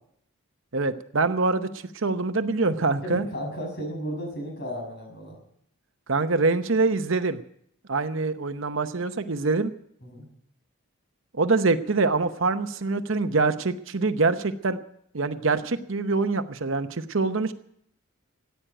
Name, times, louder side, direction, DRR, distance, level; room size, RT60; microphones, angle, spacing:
voice 1, 0.7-1.7 1.9-3.3 6.1-7.4 7.9-9.7 11.4-14.8 15.1-17.5, right 3 dB, 60° right, 10 dB, 0.8 m, -24 dB
voice 2, 3.0-5.4 10.0-10.3, equal, 50° left, 1 dB, 6.0 m, -34 dB
15.0 x 9.2 x 10.0 m, 0.71 s
head